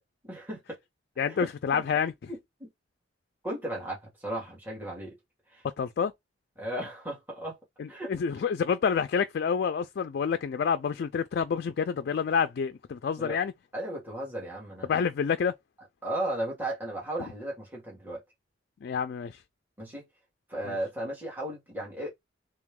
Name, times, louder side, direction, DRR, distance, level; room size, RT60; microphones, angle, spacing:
voice 1, 0.2-0.8 1.3-1.9 2.3-2.7 3.4-5.2 5.5-5.6 6.6-7.6 7.9-8.4 13.2-13.4 13.7-15.0 16.0-18.2 19.8-20.1 20.5-22.1, right 1 dB, 10° right, 1.7 m, -35 dB
voice 2, 1.2-2.1 5.8-6.1 7.8-13.5 14.9-15.5 18.8-19.4 20.7-20.8, left 6 dB, 55° left, 0.3 m, -28 dB
3.4 x 3.0 x 3.6 m
head